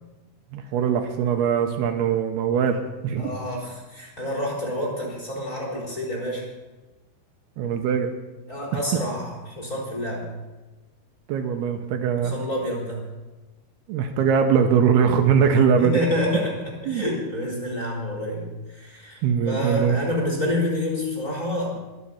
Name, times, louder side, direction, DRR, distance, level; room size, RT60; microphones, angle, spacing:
voice 1, 0.5-3.4 7.6-8.1 8.7-8.8 11.3-12.4 13.9-16.0 16.9-17.0 19.2-20.0, right 7 dB, 75° right, 6 dB, 2.7 m, -21 dB
voice 2, 3.2-6.4 8.5-10.3 12.2-13.0 15.8-19.2 19.5-21.8, left 1 dB, 20° left, -2 dB, 4.2 m, -28 dB
22.0 x 7.7 x 5.8 m, 1.1 s
omnidirectional pair, 5.0 m